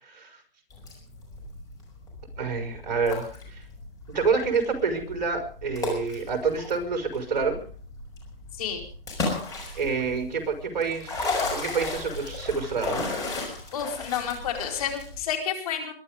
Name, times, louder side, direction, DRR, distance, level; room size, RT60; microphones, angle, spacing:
voice 1, 0.0-0.4 2.4-3.6 4.1-7.6 9.8-13.0, right 5 dB, 45° right, 6 dB, 5.7 m, -28 dB
sound 1, 0.7-15.2, left 3 dB, 10° left, 5.7 m, -35 dB
voice 2, 13.7-15.9, left 8 dB, 40° left, 4 dB, 4.7 m, -30 dB
23.0 x 11.5 x 5.2 m, 0.42 s
hypercardioid pair, 155°, 29 cm